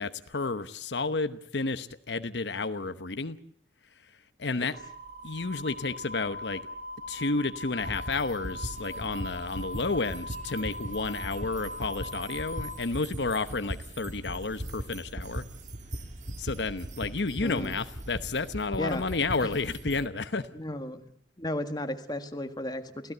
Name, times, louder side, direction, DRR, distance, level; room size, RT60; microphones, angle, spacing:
voice 1, 0.0-3.4 4.0-4.1 4.4-4.7 5.2-6.6 7.1-15.4 16.4-20.5, left 3 dB, 75° left, 11 dB, 1.0 m, -31 dB
sound 1, 4.7-12.7, left 1 dB, 60° right, 3.0 m, -41 dB
sound 2, 7.8-20.0, right 1 dB, 45° right, 1.6 m, -40 dB
voice 2, 17.4-17.7 18.8-19.1 19.4-19.5 20.5-21.0 21.4-23.1, left 1 dB, 25° left, 7 dB, 1.9 m, -34 dB
28.5 x 16.5 x 8.0 m, 0.67 s
head